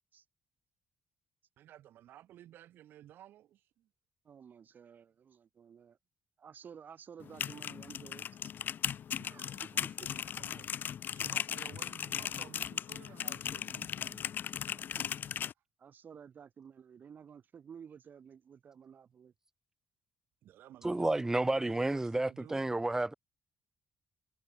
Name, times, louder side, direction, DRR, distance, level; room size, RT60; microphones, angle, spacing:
voice 1, 1.6-3.9 9.4-10.7 11.0-14.4 20.4-22.8, right 12 dB, 70° right, 2.8 m, -55 dB
voice 2, 4.2-6.0 6.4-8.2 9.2-9.7 14.7-15.1 15.8-19.3, right 7 dB, 50° right, 1.2 m, -53 dB
sound 1, 7.2-15.5, left 9 dB, 60° left, 0.7 m, -37 dB
voice 3, 20.8-23.1, right 2 dB, 15° right, 0.3 m, -31 dB
hypercardioid pair, 45°, 4 cm